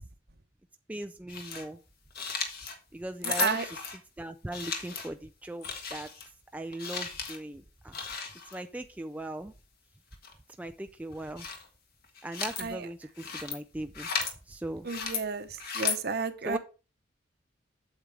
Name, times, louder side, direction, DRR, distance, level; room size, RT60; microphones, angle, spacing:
voice 1, 0.9-1.8 2.9-3.8 4.2-6.1 6.5-8.0 8.5-9.5 10.6-11.5 12.2-14.1 14.5-14.9 16.5-16.6, right 1 dB, 10° right, 0.3 m, -39 dB
sound 1, 1.3-1.6 2.1-2.8 3.2-4.0 4.5-5.1 5.6-6.3 6.7-7.4 7.9-8.6 10.1-10.3 11.1-11.7 12.0-12.6 13.2-13.6 13.9-14.3 14.9-15.2 15.6-16.0, left 6 dB, 55° left, 1.6 m, -35 dB
voice 2, 3.2-3.7 12.6-12.9 14.8-16.6, right 4 dB, 55° right, 0.9 m, -32 dB
8.2 x 7.4 x 3.3 m
head